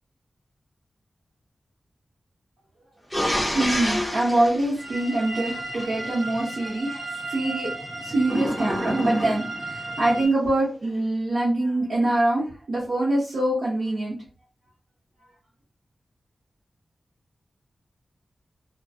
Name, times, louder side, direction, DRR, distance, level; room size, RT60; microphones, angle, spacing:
sound 1, 3.1-5.8 8.2-9.7, equal, 5° right, 0.8 m, -28 dB
voice 1, 3.5-7.0 7.3-7.7 8.0-14.1, right 1 dB, 90° right, -6 dB, 0.9 m, -24 dB
sound 2, 4.8-10.3, right 2 dB, 30° right, 1.2 m, -35 dB
2.4 x 2.1 x 2.5 m, 0.36 s
wide cardioid pair, 110°, 0 cm